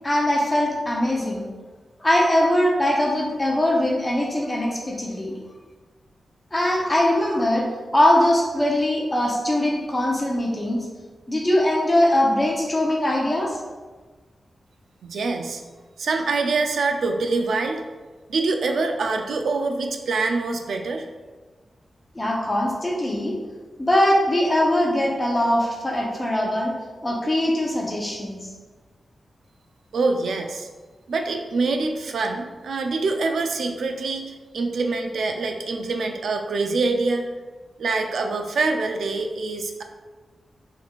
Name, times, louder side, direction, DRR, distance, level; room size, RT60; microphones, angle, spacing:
voice 1, 0.0-1.5 2.0-5.4 6.5-10.9 11.3-13.6 22.1-23.4 23.8-26.7 27.0-28.5, left 1 dB, 20° left, -2 dB, 0.8 m, -21 dB
voice 2, 15.0-15.6 16.0-17.8 18.3-21.1 29.9-30.7 31.1-37.3 37.8-39.8, right 3 dB, 80° right, 4 dB, 0.5 m, -25 dB
5.8 x 3.6 x 2.4 m, 1.3 s
wide cardioid pair, 135°, 0 cm